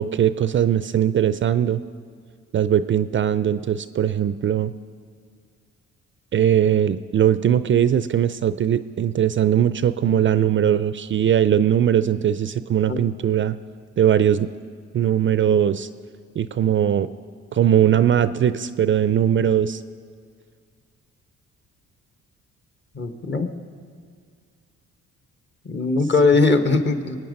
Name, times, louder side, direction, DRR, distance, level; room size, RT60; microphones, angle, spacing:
voice 1, 0.0-1.8 2.5-4.7 6.3-13.6 14.0-14.5 14.9-15.9 16.4-17.1 17.5-19.8, right 9 dB, 40° right, 14 dB, 0.4 m, -20 dB
voice 2, 22.9-23.5 25.6-27.2, left 3 dB, 35° left, 8 dB, 1.3 m, -20 dB
21.5 x 9.3 x 5.3 m, 2.1 s
cardioid pair, 90°, 30 cm